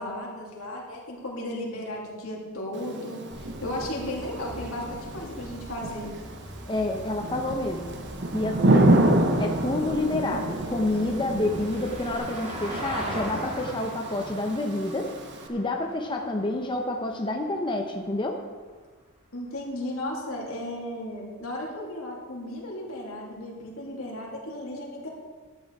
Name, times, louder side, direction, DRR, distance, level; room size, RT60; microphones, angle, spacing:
voice 1, 0.0-6.1 19.3-25.1, left 1 dB, 80° left, -2 dB, 3.0 m, -35 dB
Thunder / Rain, 2.7-15.5, right 1 dB, 55° right, 1.0 m, -28 dB
sound 1, 3.3-12.2, equal, 15° right, 2.7 m, -44 dB
voice 2, 6.7-8.0 8.3-15.1 15.5-18.4, left 2 dB, 20° left, 2 dB, 0.8 m, -28 dB
Vehicle, 7.7-18.0 20.3-20.4, right 1 dB, 30° right, 2.4 m, -41 dB
12.0 x 9.0 x 4.8 m, 1.4 s
head